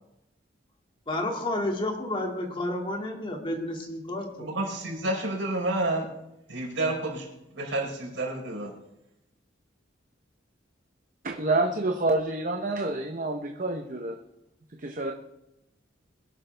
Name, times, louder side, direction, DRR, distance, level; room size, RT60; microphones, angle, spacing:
voice 1, 1.1-4.5, left 1 dB, 25° left, 1 dB, 2.2 m, -31 dB
voice 2, 4.4-6.1 6.5-7.3 7.5-8.7, right 2 dB, 80° right, 0 dB, 4.2 m, -29 dB
voice 3, 11.2-14.2 14.8-15.1, right 2 dB, 45° right, 3 dB, 0.9 m, -28 dB
22.0 x 11.5 x 3.4 m, 0.87 s
head